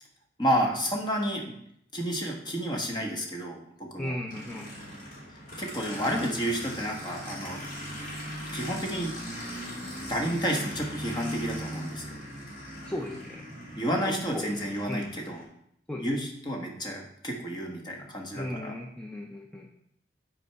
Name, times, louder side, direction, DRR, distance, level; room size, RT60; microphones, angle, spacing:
voice 1, 0.4-1.5 1.9-4.2 5.6-7.7 8.5-9.1 10.1-12.1 13.8-15.4 16.0-18.8, equal, 25° left, 0 dB, 1.2 m, -30 dB
voice 2, 4.0-4.7 12.9-13.5 14.1-14.5 14.9-15.1 15.9-16.1 18.3-19.7, left 1 dB, 5° left, 0 dB, 0.5 m, -36 dB
Aircraft, 4.3-15.4, equal, 50° left, 3.3 m, -39 dB
8.4 x 4.5 x 4.5 m, 0.73 s
head